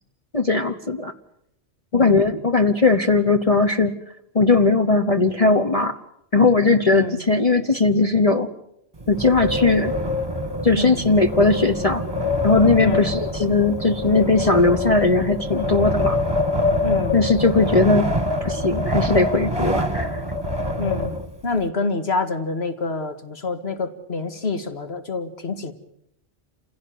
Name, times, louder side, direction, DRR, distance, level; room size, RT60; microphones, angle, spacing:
voice 1, 0.3-1.1 1.9-4.0 4.3-6.0 6.3-8.5 9.1-9.9 10.6-12.0 12.4-16.2 17.1-18.1 18.4-20.2, left 3 dB, 30° left, 5 dB, 1.1 m, -18 dB
voice 2, 6.9-7.2 10.8-11.1 12.8-13.2 16.8-17.2 20.8-21.2 21.4-25.7, left 4 dB, 55° left, 8 dB, 2.3 m, -27 dB
Wind, 9.0-21.6, left 1 dB, 20° right, 1.8 m, -25 dB
28.5 x 16.5 x 9.4 m, 0.76 s
omnidirectional pair, 1.3 m